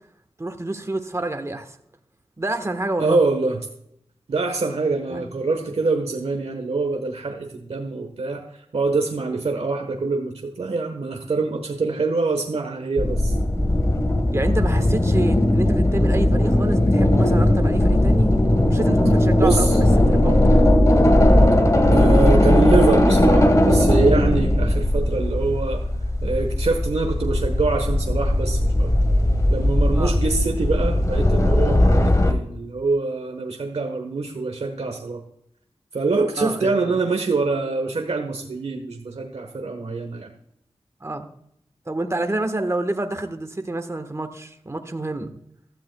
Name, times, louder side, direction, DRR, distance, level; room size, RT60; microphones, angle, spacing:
voice 1, 0.4-1.7 2.4-3.2 5.1-5.3 14.3-18.3 18.6-20.5 29.9-30.1 36.4-37.0 41.0-41.3 41.9-45.3, right 2 dB, 25° right, 7 dB, 1.3 m, -28 dB
voice 2, 3.0-3.6 4.3-13.3 19.4-19.8 21.9-25.8 26.2-28.9 29.5-35.2 35.9-40.3, right 3 dB, 85° right, 3 dB, 1.2 m, -24 dB
sound 1, 13.0-32.3, left 1 dB, 30° left, 1.5 m, -18 dB
15.5 x 13.0 x 2.3 m, 0.75 s
wide cardioid pair, 85°, 10 cm